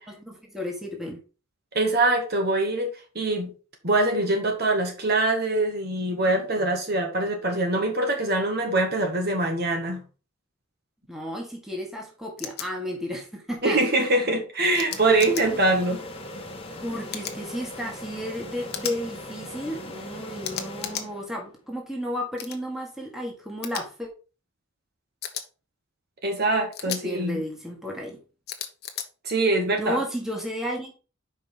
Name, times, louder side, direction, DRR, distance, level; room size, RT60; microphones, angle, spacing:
voice 1, 0.1-1.2 11.1-13.8 16.8-24.1 26.8-28.2 29.8-30.9, equal, ahead, 1.7 m, -33 dB
voice 2, 1.7-3.5 3.8-10.1 13.6-16.0 26.2-27.4 29.2-30.0, right 2 dB, 50° right, 1.7 m, -23 dB
sound 1, 12.4-12.7 14.7-15.4 17.1-17.4 18.7-19.0 20.4-21.1 22.4-22.6 23.6-23.8 25.2-25.4 26.7-27.0 28.5-29.1, left 9 dB, 50° left, 1.0 m, -34 dB
sound 2, 14.9-21.6, left 1 dB, 25° left, 1.5 m, -40 dB
5.4 x 5.1 x 5.8 m
head